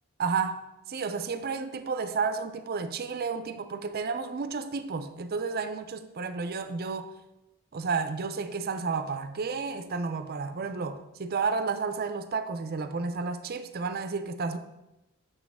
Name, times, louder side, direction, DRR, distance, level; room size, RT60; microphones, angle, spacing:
voice 1, 0.2-7.1 7.7-14.6, right 4 dB, 45° right, 10 dB, 0.5 m, -31 dB
7.0 x 6.2 x 3.6 m, 0.95 s
head